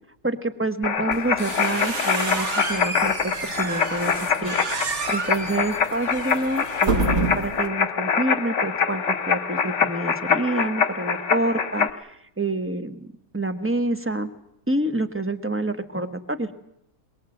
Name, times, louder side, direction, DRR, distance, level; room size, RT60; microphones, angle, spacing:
voice 1, 0.2-4.1 4.4-4.6 5.1-14.3 14.7-16.5, right 2 dB, 10° right, 8 dB, 1.1 m, -27 dB
sound 1, 0.8-11.9, left 6 dB, 55° left, 1.4 m, -25 dB
sound 2, 1.1-7.7, right 3 dB, 50° right, 1.8 m, -29 dB
23.0 x 22.0 x 7.8 m, 0.79 s
omnidirectional pair, 1.6 m